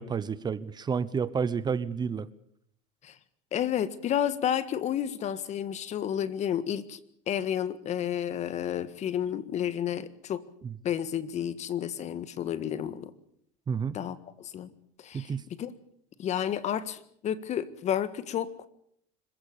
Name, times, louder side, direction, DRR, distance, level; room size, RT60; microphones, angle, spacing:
voice 1, 0.0-2.3 10.6-10.7 13.7-14.0 15.1-15.4, right 6 dB, 25° right, 17 dB, 0.9 m, -30 dB
voice 2, 3.5-7.0 7.3-10.4 10.8-13.1 13.9-14.7 15.0-15.3 15.6-15.7 16.2-18.5, left 10 dB, 40° left, 15 dB, 1.7 m, -31 dB
26.0 x 15.0 x 8.6 m, 0.67 s
supercardioid pair, 115°, 17 cm